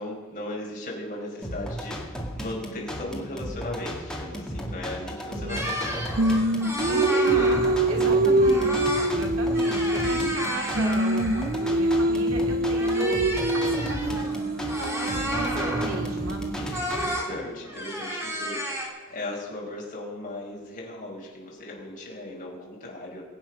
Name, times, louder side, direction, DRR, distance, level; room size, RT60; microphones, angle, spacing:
voice 1, 0.0-6.4 7.9-8.6 16.6-23.2, left 1 dB, 40° left, -3 dB, 5.3 m, -37 dB
sound 1, 1.4-17.0, equal, 5° left, 2.2 m, -35 dB
voice 2, 5.3-5.6 6.9-7.6 7.9-13.2 13.5-14.3 14.8-16.4, right 1 dB, 70° right, 2 dB, 2.6 m, -34 dB
sound 2, 5.5-7.9 8.4-9.1 9.4-11.7 12.7-16.0 16.7-17.3 17.6-18.9, equal, 10° right, 3.2 m, -32 dB
Singing, 6.2-10.5 10.8-16.8, right 2 dB, 45° right, 0.7 m, -25 dB
22.5 x 9.3 x 5.6 m, 1.5 s
head